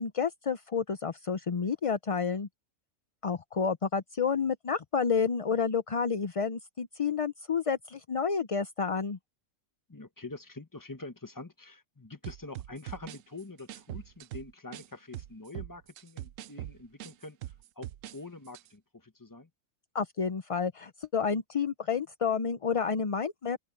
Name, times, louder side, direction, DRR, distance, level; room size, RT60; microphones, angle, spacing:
voice 1, 0.0-2.5 3.2-9.2 19.9-23.6, left 6 dB, 40° left, 0.5 m, -30 dB
voice 2, 9.9-19.5, left 3 dB, 15° left, 1.1 m, -45 dB
sound 1, 12.2-14.9 15.1-18.2 18.5-18.7, right 13 dB, 75° right, 0.9 m, -42 dB
open air
omnidirectional pair, 1.4 m